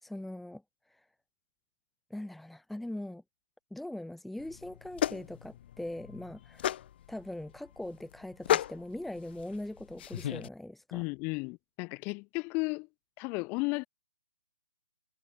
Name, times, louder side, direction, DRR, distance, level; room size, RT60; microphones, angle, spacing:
voice 1, 0.0-0.6 0.9-1.0 2.1-3.2 3.7-6.7 7.1-11.0, left 1 dB, ahead, 2.6 m, -41 dB
sound 1, 4.4-10.5, left 11 dB, 40° left, 6.8 m, -35 dB
voice 2, 10.9-12.9 13.2-13.9, left 28 dB, 25° left, 3.8 m, -34 dB
figure-of-eight pair, 145°, 8 cm